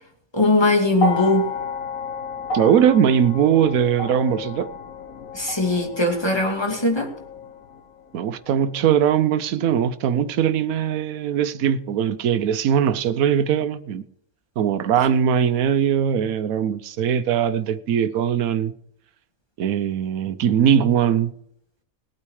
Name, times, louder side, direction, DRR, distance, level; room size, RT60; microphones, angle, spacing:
voice 1, 0.3-1.5 5.3-7.1, left 2 dB, 20° left, 2.3 m, -20 dB
sound 1, 0.9-9.3 10.4-10.5, left 3 dB, 70° left, 1.9 m, -32 dB
voice 2, 2.5-4.7 8.1-14.0 14.6-18.7 19.6-21.3, right 8 dB, 80° right, 1.2 m, -20 dB
19.0 x 8.7 x 4.8 m
omnidirectional pair, 1.5 m